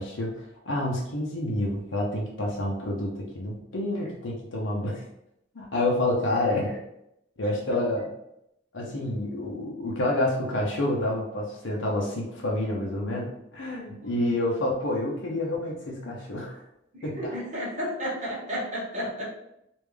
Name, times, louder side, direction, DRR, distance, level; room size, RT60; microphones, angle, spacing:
voice 1, 0.0-5.0 5.5-6.8 7.4-8.1 8.7-16.6 17.0-17.3, left 1 dB, 85° left, -2 dB, 0.7 m, -28 dB
voice 2, 16.9-19.2, equal, 40° right, -6 dB, 1.3 m, -32 dB
3.4 x 2.5 x 3.3 m, 0.80 s
head